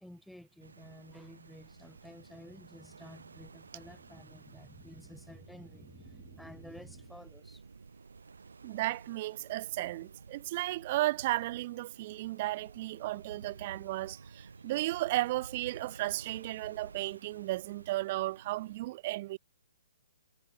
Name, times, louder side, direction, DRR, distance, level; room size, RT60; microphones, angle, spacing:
voice 1, 0.0-7.6, left 1 dB, ahead, 0.7 m, -52 dB
sound 1, 0.6-18.8, right 4 dB, 80° right, 0.9 m, -53 dB
voice 2, 8.6-19.4, right 18 dB, 40° right, 0.3 m, -34 dB
figure-of-eight pair, 130°, 0 cm